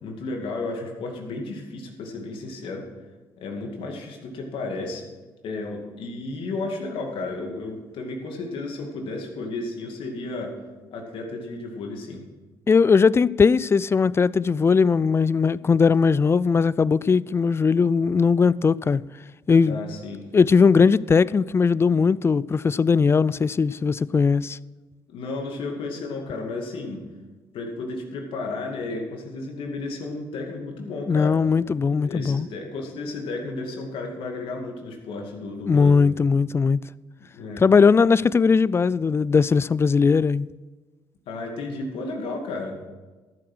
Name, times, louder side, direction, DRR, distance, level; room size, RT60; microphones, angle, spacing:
voice 1, 0.0-2.9 3.4-5.0 5.4-10.5 10.9-12.2 19.6-20.2 25.1-27.0 27.5-31.3 32.0-36.0 37.3-37.6 41.3-42.9, left 3 dB, 75° left, 2.4 m, -33 dB
voice 2, 12.7-19.0 19.5-19.8 20.3-24.6 31.1-32.5 35.7-36.8 37.6-40.5, left 5 dB, 25° left, 0.3 m, -19 dB
13.0 x 7.8 x 6.2 m
supercardioid pair, 75°, 9 cm